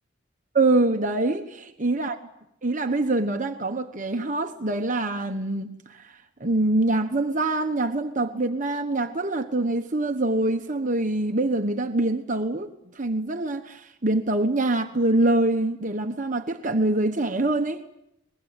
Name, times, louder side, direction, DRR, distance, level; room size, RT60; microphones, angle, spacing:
voice 1, 0.5-2.2 2.6-12.7 12.9-17.8, right 2 dB, 35° right, 5 dB, 1.2 m, -25 dB
24.5 x 21.0 x 9.1 m, 0.81 s
head